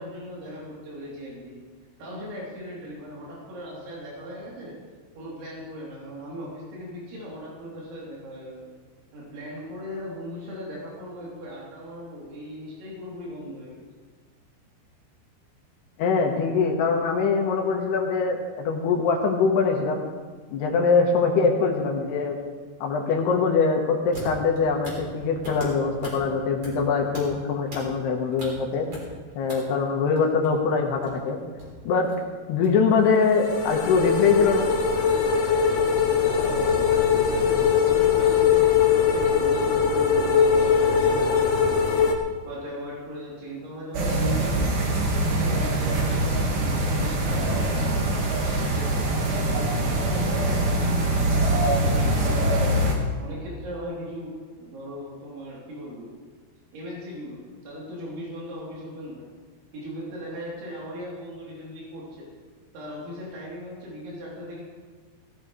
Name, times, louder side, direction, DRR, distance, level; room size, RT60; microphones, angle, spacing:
voice 1, 0.0-1.6 2.0-4.8 5.2-8.7 9.1-13.8 36.2-42.0 42.5-48.1 48.4-52.8 53.2-56.2 56.7-59.3 59.7-62.3 62.7-64.6, equal, 70° right, -6 dB, 5.8 m, -38 dB
voice 2, 16.0-20.0 20.5-22.4 22.8-28.9 29.4-31.4 31.8-32.1 32.5-34.7, left 5 dB, 70° left, 1 dB, 3.0 m, -23 dB
sound 1, 24.1-29.5 29.8-38.1, right 2 dB, 30° right, 4.3 m, -42 dB
sound 2, 33.1-42.1, left 6 dB, 85° left, 1.6 m, -21 dB
sound 3, 43.9-53.0, right 1 dB, 55° right, 2.6 m, -23 dB
17.5 x 14.5 x 3.3 m, 1.5 s
omnidirectional pair, 5.5 m